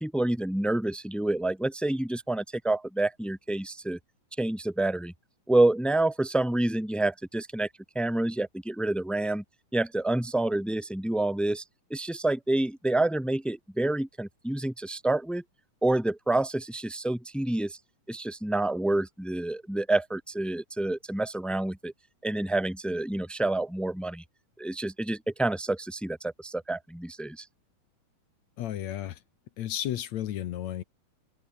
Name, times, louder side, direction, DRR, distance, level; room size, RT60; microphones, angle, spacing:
voice 1, 0.0-4.0 4.4-5.1 5.5-7.7 7.9-9.4 9.7-11.6 11.9-15.4 15.8-17.8 18.1-21.9 22.2-24.2 24.6-27.4, right 2 dB, ahead, 0.8 m, -28 dB
voice 2, 28.6-29.2 29.6-30.8, left 12 dB, 65° left, 2.1 m, -33 dB
omnidirectional pair, 3.8 m